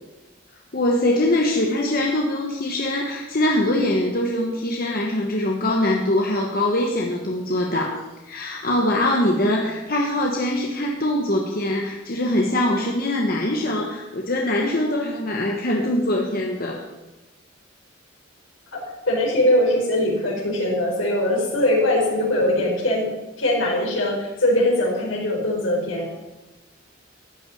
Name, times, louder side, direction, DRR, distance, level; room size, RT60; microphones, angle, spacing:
voice 1, 0.7-16.8, left 1 dB, 50° left, 0 dB, 1.3 m, -23 dB
voice 2, 19.1-23.1 23.4-26.1, left 1 dB, 80° left, -1 dB, 4.4 m, -21 dB
13.0 x 6.1 x 9.1 m, 1.1 s
head